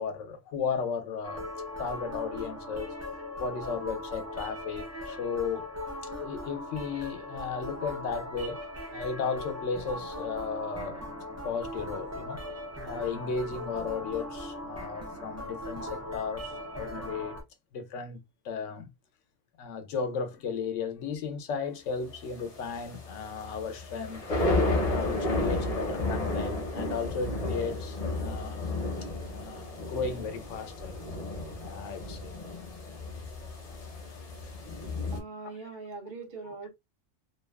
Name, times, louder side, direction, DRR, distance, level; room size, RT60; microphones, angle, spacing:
voice 1, 0.0-1.5 1.8-2.9 3.4-5.7 6.0-8.6 8.9-11.0 11.4-12.4 12.8-17.4 17.7-18.2 18.4-18.9 19.6-24.2 24.8-28.8 29.2-31.0 31.6-32.3 34.4-34.5, left 5 dB, 85° left, 1.0 m, -35 dB
sound 1, 1.2-17.4, left 1 dB, 20° right, 0.4 m, -39 dB
sound 2, 22.1-35.2, left 2 dB, 40° left, 0.6 m, -32 dB
voice 2, 35.1-36.7, right 4 dB, 55° right, 1.0 m, -41 dB
2.7 x 2.3 x 2.2 m
omnidirectional pair, 1.2 m